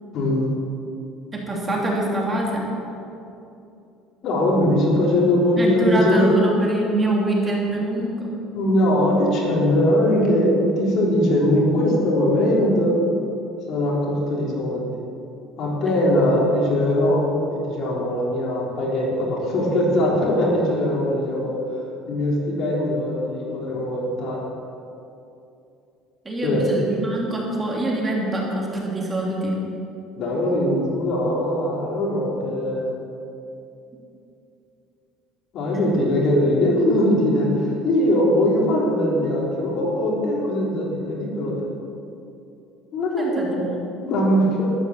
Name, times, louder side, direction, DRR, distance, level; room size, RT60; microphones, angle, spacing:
voice 1, 0.1-0.5 4.2-6.3 7.7-7.8 8.5-13.0 13.7-14.9 15.6-21.6 22.1-24.4 26.4-26.8 30.2-32.9 35.5-41.6 42.9-43.6 44.1-44.7, left 1 dB, 50° left, -3 dB, 3.9 m, -21 dB
voice 2, 1.3-2.7 5.6-8.3 26.2-29.6 43.2-43.7, right 1 dB, 20° right, -2 dB, 3.0 m, -24 dB
13.0 x 11.5 x 7.4 m, 2.8 s
cardioid pair, 140°, 0 cm